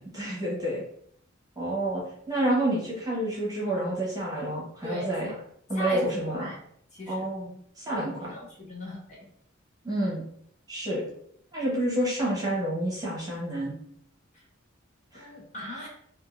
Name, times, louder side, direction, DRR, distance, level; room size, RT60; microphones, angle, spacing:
voice 1, 0.1-0.8 1.6-5.3 5.7-6.5 7.1-8.3 9.8-10.2 10.7-11.0 11.5-13.7 15.1-15.3, right 1 dB, 20° right, -5 dB, 1.1 m, -29 dB
voice 2, 4.8-5.4 5.7-6.6 6.9-7.3 8.3-9.0 14.3-14.4 15.1-15.9, left 1 dB, 35° left, -5 dB, 1.2 m, -38 dB
3.6 x 2.6 x 2.4 m, 0.67 s
head